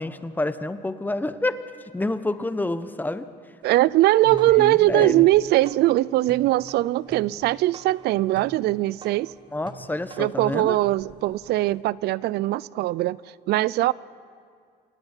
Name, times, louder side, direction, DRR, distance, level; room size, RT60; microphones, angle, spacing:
voice 1, 0.0-1.6 1.9-3.3 4.3-5.3 9.5-10.8, left 2 dB, 10° left, 12 dB, 1.0 m, -28 dB
voice 2, 3.6-9.3 10.2-13.2 13.5-13.9, right 17 dB, 75° right, 21 dB, 0.4 m, -21 dB
sound 1, 4.0-11.8, right 5 dB, 30° right, 1.2 m, -47 dB
27.5 x 11.0 x 9.9 m, 2.1 s
cardioid pair, 110°, 17 cm